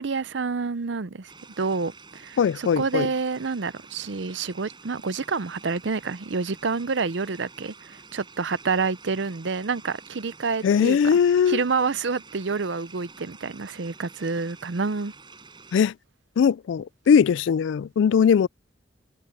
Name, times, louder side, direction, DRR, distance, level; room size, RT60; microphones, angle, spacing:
voice 1, 0.0-11.2 11.5-15.1, right 4 dB, 65° right, 0.6 m, -28 dB
sound 1, 1.3-15.8, right 4 dB, 25° right, 8.0 m, -48 dB
voice 2, 2.4-3.1 10.6-11.6 15.7-15.9 16.4-18.5, left 7 dB, 70° left, 0.3 m, -20 dB
head